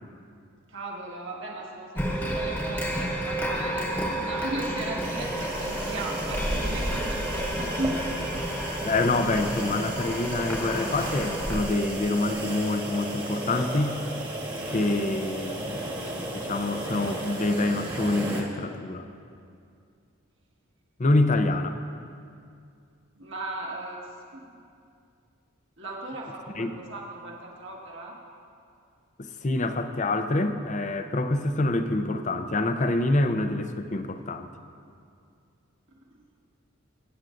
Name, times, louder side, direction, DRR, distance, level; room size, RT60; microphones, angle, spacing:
voice 1, 0.7-8.3 23.2-24.0 24.3-24.6 25.8-28.2, right 2 dB, 60° right, -2 dB, 1.7 m, -36 dB
sound 1, 1.9-11.6, equal, 10° left, 1.1 m, -31 dB
sound 2, 5.0-18.4, right 1 dB, 20° right, 1.3 m, -34 dB
voice 2, 8.8-14.0 14.7-15.9 16.3-19.1 21.0-21.8 26.6-26.8 29.2-34.5, left 2 dB, 35° left, 8 dB, 0.5 m, -26 dB
23.0 x 9.6 x 2.6 m, 2.4 s
head